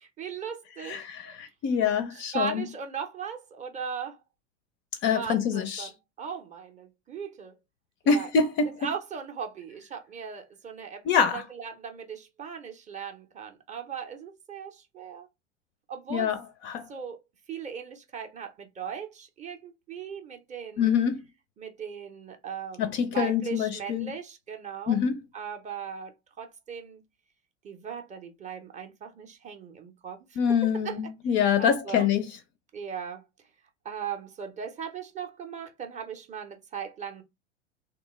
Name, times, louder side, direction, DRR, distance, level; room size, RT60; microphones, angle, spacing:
voice 1, 0.0-1.3 2.1-4.2 5.1-7.6 8.0-8.3 8.7-15.3 15.9-16.3 16.9-17.2 17.5-21.0 21.6-25.0 25.3-27.0 27.6-30.4 30.7-31.0 31.3-32.1 32.7-33.2 33.8-37.2, right 7 dB, 20° right, 0.5 m, -38 dB
voice 2, 0.9-2.6 5.0-5.9 8.1-8.9 11.1-11.4 16.1-16.4 16.6-16.9 20.8-21.2 22.8-24.1 24.9-25.2 30.4-32.3, left 7 dB, 35° left, 0.4 m, -25 dB
2.9 x 2.2 x 3.0 m
hypercardioid pair, 90°, 36 cm